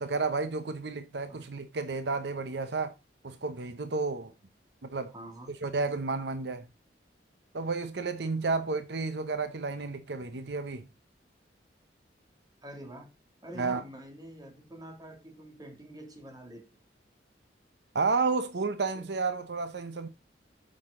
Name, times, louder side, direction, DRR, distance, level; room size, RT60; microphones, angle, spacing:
voice 1, 0.0-3.0 3.2-4.3 4.8-5.1 5.6-6.7 7.5-10.9 13.6-13.8 17.9-20.1, right 4 dB, 70° right, 0.7 m, -31 dB
voice 2, 5.1-5.5 12.6-13.1 13.4-16.8 18.9-19.0, right 1 dB, 20° right, 2.2 m, -46 dB
8.7 x 6.3 x 3.7 m
head